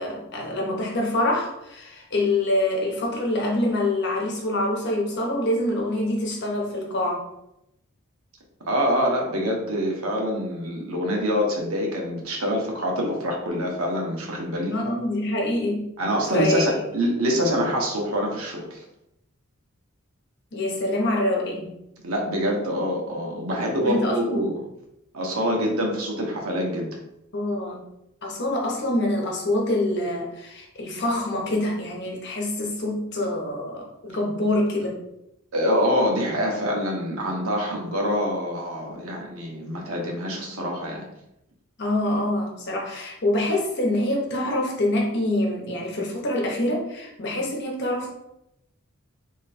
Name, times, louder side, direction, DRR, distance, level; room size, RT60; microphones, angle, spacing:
voice 1, 0.0-7.3 14.7-15.9 16.3-16.9 20.5-21.7 23.8-24.5 27.3-27.8 28.2-35.0 41.8-48.1, left 1 dB, 55° left, -1 dB, 1.1 m, -25 dB
voice 2, 8.7-14.7 16.0-18.8 22.0-24.6 25.1-27.0 35.5-41.0, equal, 85° right, 0 dB, 1.1 m, -25 dB
3.2 x 3.1 x 4.2 m, 0.82 s
head